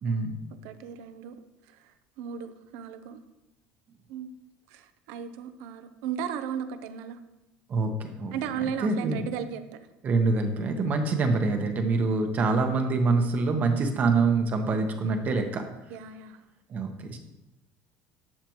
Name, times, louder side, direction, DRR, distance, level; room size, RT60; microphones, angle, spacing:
voice 1, 0.0-0.4 7.7-9.3 10.0-15.6 16.7-17.2, right 3 dB, 35° right, 5 dB, 1.0 m, -25 dB
voice 2, 0.6-1.3 2.2-3.2 4.1-4.3 4.7-7.2 8.3-9.6 15.9-16.4, right 8 dB, 75° right, 10 dB, 0.8 m, -35 dB
12.0 x 6.7 x 3.0 m, 0.96 s
cardioid pair, 150°, 5 cm